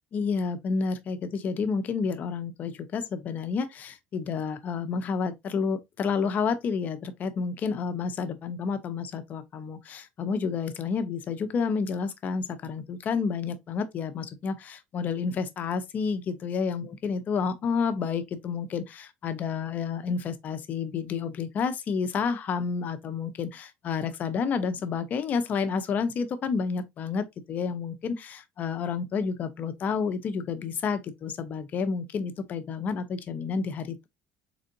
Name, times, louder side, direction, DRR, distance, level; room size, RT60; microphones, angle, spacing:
voice 1, 0.1-34.1, left 5 dB, 45° left, 0.8 m, -30 dB
4.1 x 3.7 x 2.6 m
cardioid pair, 115°, 4 cm